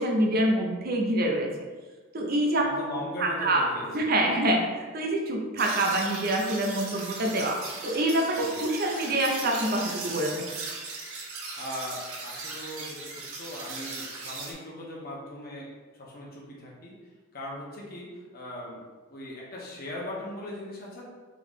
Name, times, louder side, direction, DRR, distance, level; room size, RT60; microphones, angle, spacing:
voice 1, 0.0-1.5 2.1-2.7 3.2-3.6 3.9-4.7 4.9-10.4, right 1 dB, 45° right, 1 dB, 0.6 m, -26 dB
voice 2, 2.6-4.2 8.3-8.6 11.6-16.9 17.3-18.8 19.1-21.0, left 1 dB, 45° left, -4 dB, 1.0 m, -39 dB
sound 1, 5.6-14.5, right 3 dB, 90° right, 0.8 m, -38 dB
3.8 x 3.0 x 3.7 m, 1.4 s
head